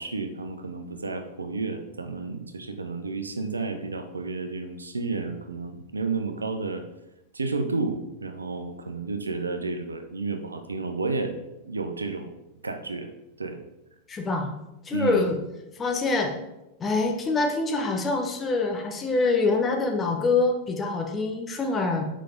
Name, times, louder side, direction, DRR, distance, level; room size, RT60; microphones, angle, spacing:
voice 1, 0.0-6.9 7.3-11.4 11.6-12.3 12.6-13.6 14.9-15.3, right 3 dB, 75° right, 7 dB, 0.7 m, -31 dB
voice 2, 14.1-14.6 14.9-15.4 15.8-16.3 16.8-22.1, left 3 dB, 20° left, 3 dB, 1.1 m, -25 dB
6.7 x 5.1 x 3.8 m, 0.93 s
figure-of-eight pair, 90°, 0 cm